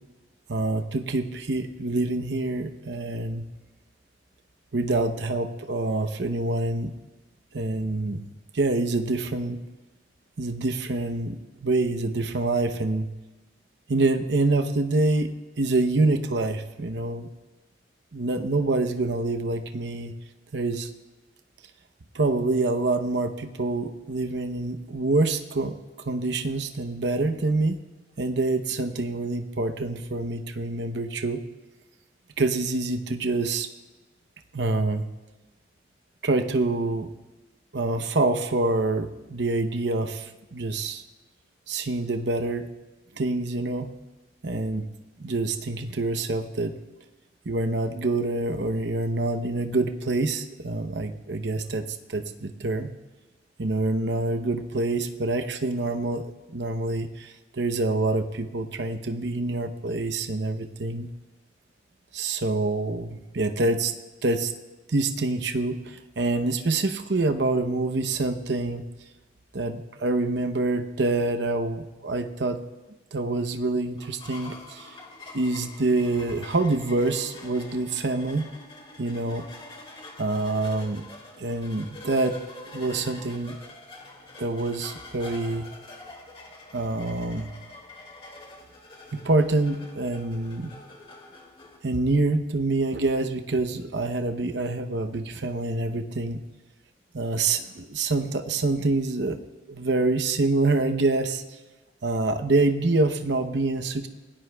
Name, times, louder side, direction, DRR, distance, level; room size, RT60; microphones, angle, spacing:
voice 1, 0.5-3.4 4.7-6.9 7.5-8.2 8.5-9.6 10.4-13.1 13.9-17.3 18.1-20.1 20.5-20.9 22.1-25.7 26.1-27.8 28.2-31.4 32.4-33.7 34.5-35.1 36.2-37.1 37.7-41.0 41.7-42.7 43.1-43.9 44.4-44.9 45.2-46.7 47.5-52.9 53.6-56.2 56.5-61.1 62.1-63.9 64.2-64.5 64.9-68.8 69.5-72.6 73.1-74.9 75.3-78.5 79.0-79.5 80.2-81.0 81.4-82.4 82.7-83.6 84.4-85.7 86.7-87.5 89.1-90.7 91.8-96.4 97.1-99.4 99.7-101.6 102.0-104.1, right 2 dB, 75° right, 8 dB, 0.8 m, -26 dB
sound 1, 74.0-91.8, left 2 dB, 30° left, 2.3 m, -45 dB
28.5 x 17.5 x 2.3 m, 1.1 s
head